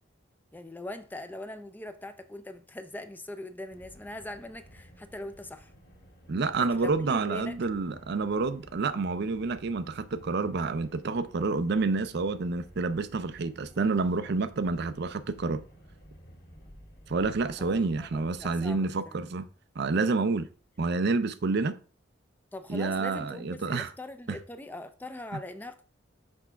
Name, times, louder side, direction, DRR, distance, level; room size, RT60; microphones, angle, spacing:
voice 1, 0.5-5.7 6.6-7.6 17.6-19.2 22.5-25.8, left 1 dB, 10° left, 0.4 m, -42 dB
Car, 3.7-18.9, equal, 50° left, 1.9 m, -54 dB
voice 2, 6.3-15.6 17.1-19.5 19.8-20.5 20.8-21.8 22.7-23.9 24.3-24.4, right 3 dB, 55° right, 0.5 m, -28 dB
6.1 x 3.5 x 5.6 m
head